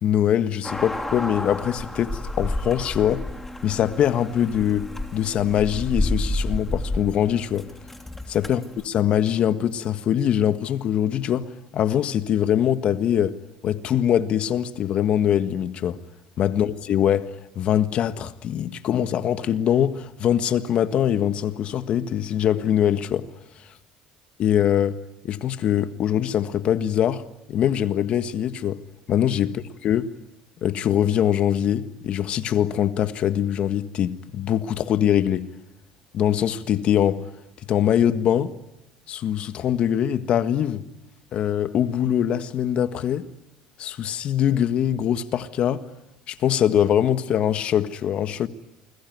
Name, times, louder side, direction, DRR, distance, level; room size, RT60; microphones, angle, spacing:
voice 1, 0.0-3.2 3.6-7.7 8.3-13.3 13.6-16.0 16.4-17.3 17.5-23.3 24.4-25.0 25.2-27.2 27.5-28.8 29.1-30.1 30.6-35.5 36.1-37.2 37.7-38.5 39.1-40.8 41.3-43.2 43.8-45.8 46.3-48.5, left 10 dB, 55° left, 1.6 m, -23 dB
sound 1, 0.6-8.8, left 1 dB, 10° left, 3.0 m, -30 dB
28.5 x 22.0 x 9.4 m
supercardioid pair, 90°, 2 cm